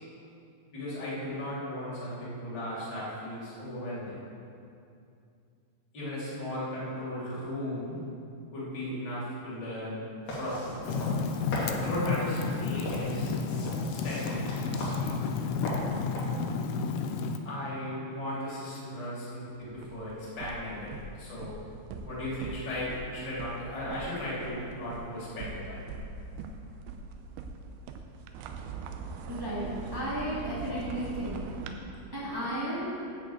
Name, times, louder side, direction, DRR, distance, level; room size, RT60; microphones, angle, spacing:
voice 1, 0.7-4.1 5.9-8.0 8.5-10.0 10.4-10.8 11.8-13.4 13.9-15.1 17.4-21.6 22.0-25.8, left 1 dB, 25° left, -8 dB, 3.0 m, -36 dB
sound 1, 10.3-16.5, equal, 55° left, 4.0 m, -38 dB
Fire, 10.8-17.4, left 5 dB, 85° left, 3.1 m, -32 dB
sound 2, 19.6-31.7, right 4 dB, 80° right, 2.9 m, -42 dB
voice 2, 29.3-29.7 29.9-31.4 32.1-32.9, equal, 10° right, -9 dB, 1.1 m, -33 dB
10.5 x 6.4 x 8.0 m, 2.6 s
omnidirectional pair, 5.4 m